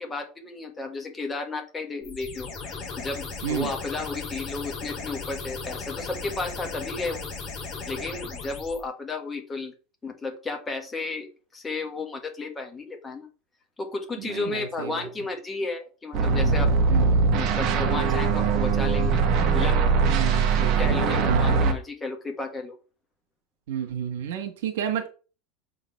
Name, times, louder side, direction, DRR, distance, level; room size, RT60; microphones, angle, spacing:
voice 1, 0.0-7.3 7.9-9.7 10.0-11.3 11.5-13.3 13.8-16.7 17.3-19.2 19.5-19.8 20.6-22.8, left 3 dB, 15° left, 3 dB, 1.6 m, -33 dB
sound 1, 2.0-8.8, left 4 dB, 30° left, 2.8 m, -36 dB
voice 2, 14.3-15.0 16.9-17.3 20.1-21.4 23.7-25.1, right 9 dB, 85° right, 4 dB, 1.5 m, -31 dB
sound 2, 16.1-21.7, right 5 dB, 40° right, 1.3 m, -21 dB
7.1 x 3.9 x 5.7 m, 0.35 s
supercardioid pair, 155°, 0 cm